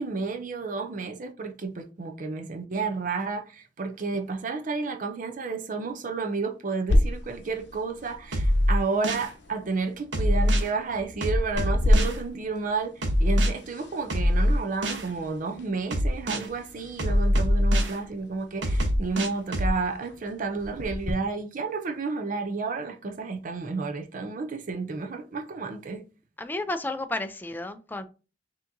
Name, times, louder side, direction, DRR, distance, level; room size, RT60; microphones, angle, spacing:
voice 1, 0.0-26.0, right 4 dB, 45° right, 0.5 m, -31 dB
sound 1, 6.9-21.1, left 1 dB, 65° left, 0.8 m, -32 dB
sound 2, 8.3-9.3 10.1-10.7 11.2-12.2 13.0-13.5 14.1-15.1 15.9-16.5 17.0-18.0 18.6-19.7, equal, 85° right, 0.9 m, -23 dB
voice 2, 26.4-28.1, left 2 dB, 10° left, 0.4 m, -32 dB
5.9 x 2.9 x 2.6 m
head